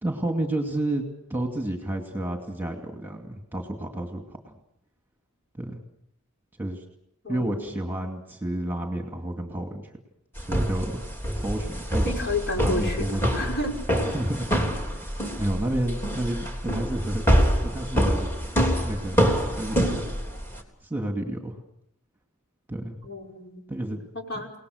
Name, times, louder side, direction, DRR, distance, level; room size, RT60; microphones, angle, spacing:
voice 1, 0.0-1.0 1.3-4.5 5.5-5.8 6.6-6.8 7.3-9.9 10.4-11.0 11.3-12.2 12.6-13.4 14.1-14.9 15.4-17.2 17.6-18.3 18.8-19.2 19.5-20.0 20.8-21.6 22.7-23.0 23.7-24.0 24.3-24.4, right 1 dB, 10° right, 3 dB, 2.5 m, -30 dB
voice 2, 7.2-7.8 12.1-13.7 23.0-23.6 24.1-24.5, left 2 dB, 50° left, 1 dB, 5.5 m, -31 dB
sound 1, 10.4-20.6, equal, 10° left, 3.4 m, -26 dB
29.5 x 19.0 x 6.6 m, 0.74 s
head